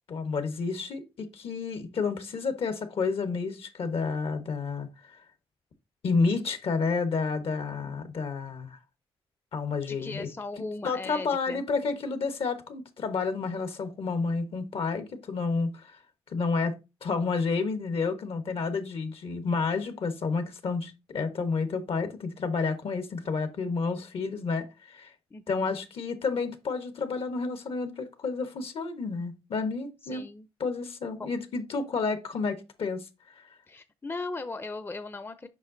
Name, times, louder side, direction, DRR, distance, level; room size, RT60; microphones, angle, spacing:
voice 1, 0.1-4.9 6.0-8.8 9.5-10.3 10.8-16.0 16.3-25.1 25.5-30.3 30.6-33.1 33.4-33.5, left 4 dB, 70° left, 1.1 m, -30 dB
voice 2, 9.9-11.6 25.3-25.8 30.0-30.5 31.2-31.3 33.7-35.5, left 3 dB, 20° left, 0.5 m, -38 dB
7.4 x 5.4 x 2.6 m
cardioid pair, 70°, 10 cm